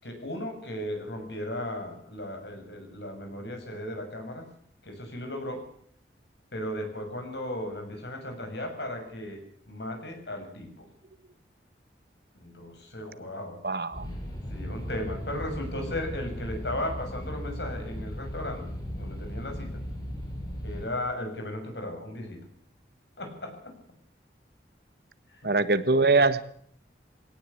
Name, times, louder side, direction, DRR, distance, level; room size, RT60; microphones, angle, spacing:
voice 1, 0.0-4.5 4.8-5.7 6.5-10.9 12.4-13.6 14.5-18.6 19.0-19.8 20.6-22.4 23.2-23.7 25.3-25.5, left 1 dB, 75° left, 5 dB, 7.0 m, -36 dB
voice 2, 13.6-14.1 25.4-26.4, right 3 dB, 60° right, 13 dB, 1.4 m, -22 dB
sound 1, 13.9-20.9, equal, 20° left, 6.8 m, -37 dB
21.0 x 18.5 x 8.5 m, 0.62 s
head